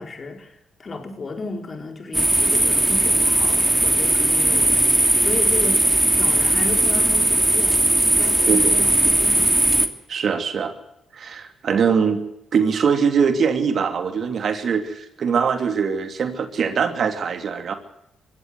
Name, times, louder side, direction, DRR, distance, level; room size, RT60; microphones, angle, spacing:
voice 1, 0.0-9.6, left 3 dB, 40° left, 5 dB, 4.6 m, -34 dB
sound 1, 2.1-9.9, right 1 dB, 15° right, 2.6 m, -18 dB
voice 2, 8.5-8.8 10.1-10.7 11.1-12.2 12.5-17.7, right 6 dB, 60° right, 8 dB, 2.9 m, -22 dB
22.0 x 16.5 x 7.9 m, 0.79 s
supercardioid pair, 60°, 0 cm